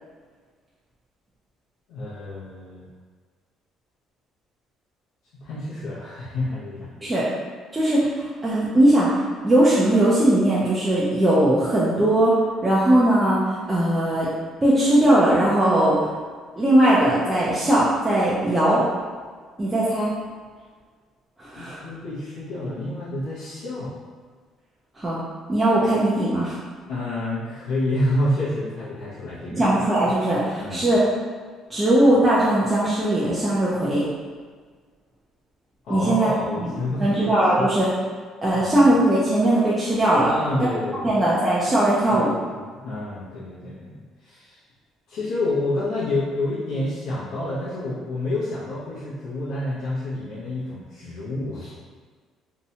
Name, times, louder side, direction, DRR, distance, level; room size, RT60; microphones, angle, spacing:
voice 1, 1.9-2.9 5.4-6.9 21.6-23.9 26.9-29.6 30.6-30.9 35.8-37.2 37.6-37.7 38.5-38.6 40.3-41.3 42.1-42.3 42.8-44.6 45.1-51.8, left 1 dB, 75° left, -10 dB, 0.6 m, -28 dB
voice 2, 7.7-9.1 9.4-12.3 12.6-13.4 13.7-14.3 14.6-16.0 16.6-18.8 19.6-20.1 21.4-21.8 25.0-25.2 25.5-26.6 29.5-31.0 31.7-34.0 35.9-36.3 36.7-37.9 38.4-40.3 41.0-42.3, right 1 dB, 15° right, -8 dB, 0.4 m, -19 dB
2.7 x 2.1 x 2.7 m, 1.6 s
cardioid pair, 155°, 0 cm